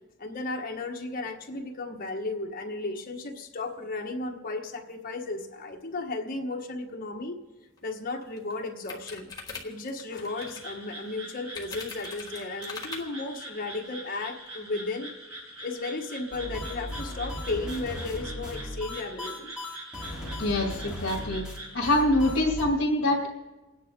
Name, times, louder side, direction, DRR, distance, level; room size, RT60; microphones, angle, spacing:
voice 1, 0.2-7.3 7.8-9.3 9.6-15.1 15.6-19.5, left 2 dB, 40° left, 2 dB, 1.4 m, -34 dB
sound 1, 7.8-7.9 8.2-10.7 11.5-13.0, left 4 dB, 20° left, 1.7 m, -41 dB
sound 2, 10.3-21.8, right 1 dB, 75° right, 6.9 m, -44 dB
sound 3, 16.3-22.6, left 1 dB, 5° right, 3.3 m, -37 dB
voice 2, 20.4-21.5 21.7-23.3, left 1 dB, 60° left, -5 dB, 2.3 m, -25 dB
29.5 x 9.9 x 3.8 m, 1.1 s
head